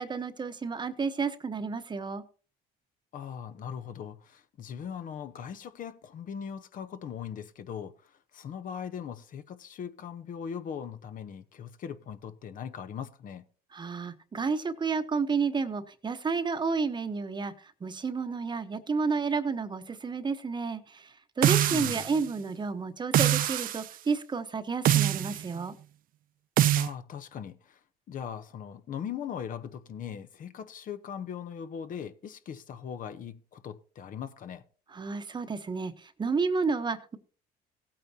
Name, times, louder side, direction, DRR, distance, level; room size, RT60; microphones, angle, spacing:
voice 1, 0.0-2.2 13.7-17.5 17.8-21.1 21.4-25.7 34.9-37.2, right 4 dB, 25° right, 1.0 m, -31 dB
voice 2, 3.1-13.4 21.7-22.0 26.7-27.8 28.1-34.6, left 8 dB, 55° left, 0.9 m, -40 dB
sound 1, 21.4-22.2 23.1-23.8 24.9-25.4 26.6-26.9, right 12 dB, 55° right, 0.5 m, -24 dB
16.5 x 8.8 x 2.8 m
cardioid pair, 110°, 17 cm